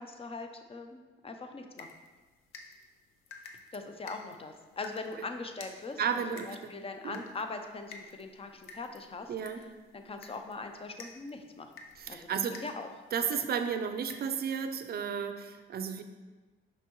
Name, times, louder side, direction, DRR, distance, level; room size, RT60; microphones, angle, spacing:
voice 1, 0.0-1.9 3.7-9.3 9.9-11.7 12.1-12.4 12.6-12.9, left 3 dB, 30° left, 6 dB, 0.6 m, -41 dB
sound 1, 1.8-14.5, left 4 dB, 85° left, 0.7 m, -53 dB
voice 2, 6.0-6.7 7.0-7.2 9.3-9.6 12.0-12.6 13.1-16.0, right 7 dB, 50° right, 8 dB, 0.5 m, -33 dB
5.8 x 5.4 x 3.1 m, 1.3 s
cardioid pair, 90°, 20 cm